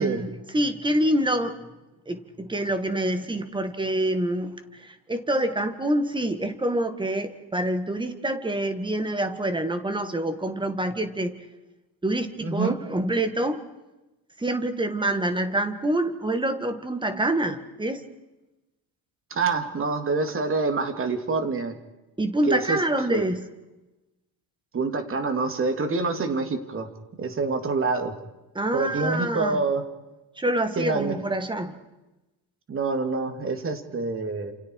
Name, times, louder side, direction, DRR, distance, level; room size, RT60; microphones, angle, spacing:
voice 1, 0.0-1.6 2.1-4.5 5.1-11.4 12.0-13.6 14.4-18.0 22.2-23.4 28.6-29.6 30.4-31.7, right 1 dB, 10° right, 9 dB, 2.1 m, -26 dB
voice 2, 12.4-12.8 19.3-21.7 22.5-22.8 23.1-23.3 24.7-26.9 27.2-28.1 28.7-29.9 30.8-31.2 32.7-34.5, right 4 dB, 30° right, 7 dB, 2.9 m, -26 dB
30.0 x 28.0 x 4.9 m, 1.0 s
cardioid pair, 160°, 42 cm